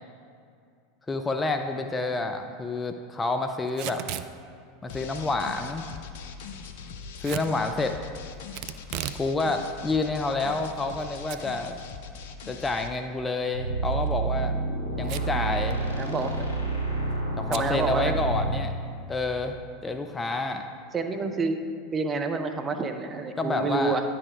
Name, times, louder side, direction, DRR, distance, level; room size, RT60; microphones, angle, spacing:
voice 1, 1.1-4.0 4.8-5.9 7.2-8.0 9.2-11.8 12.5-14.6 15.0-15.8 17.2-18.7 19.1-20.6 23.4-24.0, left 3 dB, 15° left, 6 dB, 0.5 m, -29 dB
Packing tape duct tape / Tearing, 3.7-4.3 7.2-7.5 8.5-9.3 9.6-9.7 10.4-11.0 11.3-11.4 11.8-11.9 13.9-14.1 15.0-15.4 15.7-15.8 16.0-16.4 17.5-17.7, right 12 dB, 55° right, 0.3 m, -35 dB
sound 1, 4.9-12.9, left 6 dB, 65° left, 0.5 m, -41 dB
sound 2, 13.5-18.6, right 3 dB, 80° left, 1.7 m, -29 dB
voice 2, 16.0-16.4 17.5-18.1 20.9-21.6 21.9-24.0, right 4 dB, 25° right, 6 dB, 0.7 m, -28 dB
9.9 x 4.2 x 5.1 m, 2.3 s
figure-of-eight pair, 80°, 0 cm